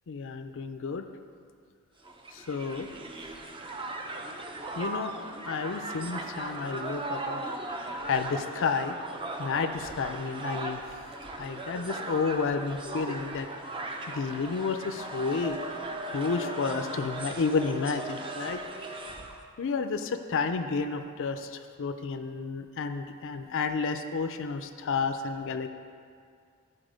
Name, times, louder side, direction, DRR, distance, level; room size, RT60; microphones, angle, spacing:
voice 1, 0.1-1.0 2.3-2.9 4.8-5.1 5.5-7.4 7.8-9.0 9.4-10.8 11.3-13.5 14.1-15.6 16.1-18.6 19.6-25.7, left 4 dB, 60° left, 7 dB, 0.5 m, -31 dB
Crowd, 2.0-19.4, right 2 dB, 25° right, 0.6 m, -38 dB
12.5 x 4.2 x 5.1 m, 2.2 s
head